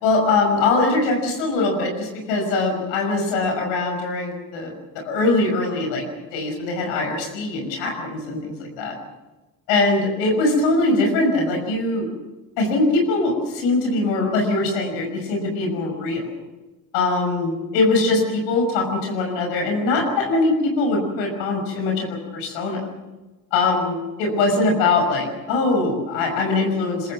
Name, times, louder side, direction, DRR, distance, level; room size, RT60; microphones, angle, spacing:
voice 1, 0.0-4.7 5.1-6.0 6.3-9.0 9.7-12.1 12.6-16.2 16.9-22.1 22.3-22.8 23.5-27.1, left 3 dB, 75° left, 2 dB, 6.1 m, -22 dB
26.0 x 22.5 x 6.1 m, 1.2 s
hypercardioid pair, 55°, 45 cm